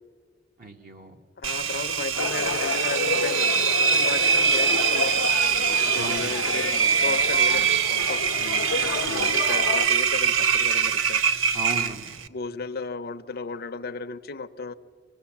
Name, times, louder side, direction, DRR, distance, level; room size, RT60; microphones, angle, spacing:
voice 1, 0.6-1.2 5.9-6.6 8.4-8.7 9.0-9.4 11.5-12.2, right 2 dB, 45° right, 3 dB, 1.1 m, -37 dB
voice 2, 1.4-3.6 3.9-5.2 5.8-8.2 9.2-11.2 12.3-14.7, left 4 dB, 50° left, 9 dB, 0.6 m, -34 dB
Engine, 1.4-12.3, right 6 dB, 70° right, 0.6 m, -23 dB
sound 1, 2.1-9.9, left 4 dB, 80° left, 0.7 m, -30 dB
26.5 x 17.0 x 7.2 m, 2.2 s
head